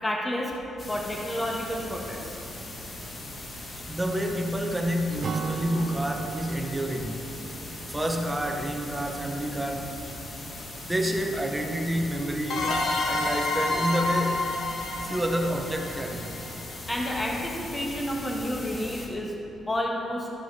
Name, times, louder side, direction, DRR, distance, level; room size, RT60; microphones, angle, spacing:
voice 1, 0.0-0.5 0.9-2.4 16.9-19.3 19.7-20.3, left 1 dB, 20° left, -1 dB, 1.5 m, -30 dB
sound 1, 0.8-19.1, left 2 dB, 40° left, 1.5 m, -40 dB
voice 2, 3.9-7.3 7.9-10.0 10.8-12.7 13.1-14.5 15.0-16.3, equal, 10° right, 3 dB, 1.0 m, -29 dB
Acoustic guitar / Strum, 5.2-8.8, right 4 dB, 45° right, 0.6 m, -36 dB
sound 2, 12.5-17.0, left 2 dB, 70° left, 1.0 m, -29 dB
13.0 x 5.6 x 4.8 m, 2.7 s
cardioid pair, 90°, 0 cm